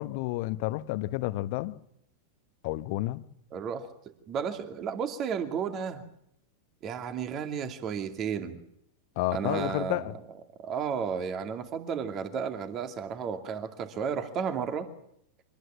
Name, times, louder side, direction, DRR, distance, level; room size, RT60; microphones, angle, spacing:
voice 1, 0.0-1.8 2.6-3.2 9.2-10.2, left 18 dB, 45° left, 1.1 m, -30 dB
voice 2, 3.5-3.9 4.3-6.0 6.8-8.6 9.3-10.0 10.6-14.9, right 7 dB, 30° right, 2.4 m, -33 dB
25.5 x 19.0 x 7.4 m
figure-of-eight pair, 90°, 0 cm